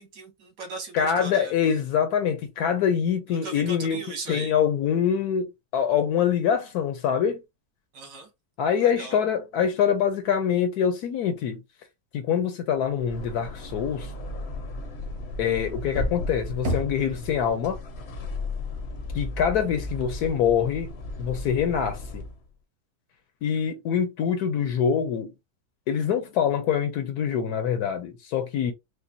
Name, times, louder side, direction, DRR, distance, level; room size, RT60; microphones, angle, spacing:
voice 1, 0.0-1.5 3.3-4.5 7.9-8.3 8.8-9.2, right 3 dB, 80° right, 2.0 m, -38 dB
voice 2, 0.9-4.0 4.3-7.4 8.6-11.6 12.1-14.1 15.4-17.8 19.1-20.9 21.2-22.2 23.4-25.3 25.9-28.7, left 8 dB, 70° left, 1.1 m, -25 dB
sound 1, 12.9-22.4, left 2 dB, 50° left, 0.8 m, -35 dB
Knock, 16.6-17.6, equal, 45° right, 0.9 m, -31 dB
5.0 x 2.1 x 2.8 m
omnidirectional pair, 1.8 m